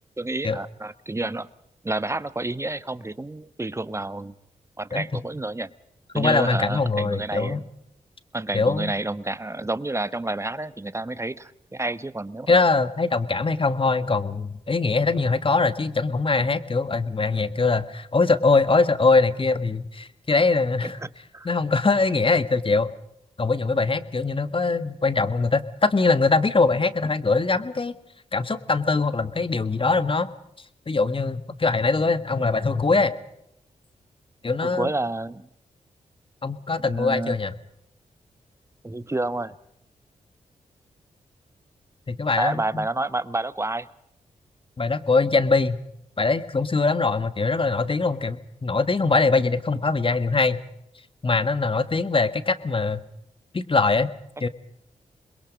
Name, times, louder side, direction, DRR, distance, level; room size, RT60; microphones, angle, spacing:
voice 1, 0.2-1.5 1.8-4.3 4.8-5.7 6.1-7.6 8.3-12.5 20.8-21.1 21.3-21.5 34.6-35.5 36.8-37.3 38.8-39.6 42.4-43.9, right 2 dB, 20° right, 14 dB, 1.3 m, -29 dB
voice 2, 6.2-7.6 8.5-8.9 12.5-21.0 21.5-22.9 23.4-27.9 28.3-30.3 30.9-33.2 34.4-34.9 36.4-37.5 42.1-42.8 44.8-45.8 46.2-50.6 51.2-53.0 53.5-54.1 54.4-54.5, left 3 dB, 40° left, 12 dB, 1.6 m, -22 dB
27.0 x 21.5 x 5.2 m, 0.76 s
supercardioid pair, 45°, 14 cm